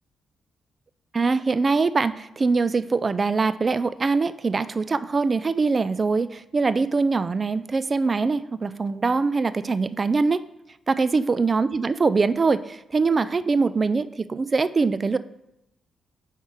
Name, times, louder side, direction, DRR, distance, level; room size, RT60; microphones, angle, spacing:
voice 1, 1.1-10.5 10.9-15.2, right 4 dB, 40° right, 14 dB, 0.4 m, -23 dB
10.0 x 3.6 x 4.8 m, 0.86 s
supercardioid pair, 50°, 0 cm